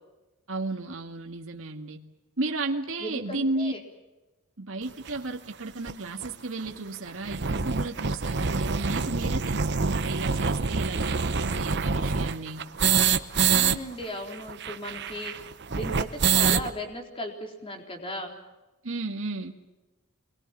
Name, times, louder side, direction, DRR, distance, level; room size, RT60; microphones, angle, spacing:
voice 1, 0.5-2.0 2.4-3.7 4.6-12.6 18.8-19.5, right 2 dB, 70° right, 3 dB, 1.9 m, -33 dB
voice 2, 3.0-3.8 13.5-15.4 15.7-18.3, equal, 25° left, 3 dB, 4.1 m, -36 dB
sound 1, 5.1-5.2 5.9-6.0 6.2-6.3 6.6-6.7 7.1-13.8 14.0-14.1 14.3-16.7, right 5 dB, 55° right, 1.0 m, -26 dB
27.0 x 22.0 x 7.5 m, 1.1 s
head